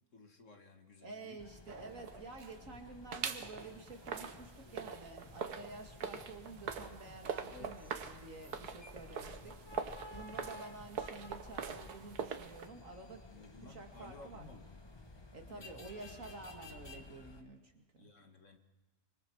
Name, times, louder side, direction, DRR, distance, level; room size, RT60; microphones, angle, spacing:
voice 1, 0.1-1.4 7.5-8.0 8.6-8.9 9.2-9.5 13.3-14.7 15.5-15.9 18.0-18.6, left 3 dB, 55° left, 5 dB, 2.0 m, -56 dB
voice 2, 1.0-13.3 13.6-14.5 15.3-18.1, right 3 dB, 55° right, 3 dB, 2.8 m, -50 dB
sound 1, 1.4-17.4, left 2 dB, 20° left, 1.1 m, -54 dB
sound 2, 1.7-2.8 3.1-12.7, right 6 dB, 90° right, 1.7 m, -43 dB
25.5 x 24.5 x 4.7 m, 1.2 s
omnidirectional pair, 1.6 m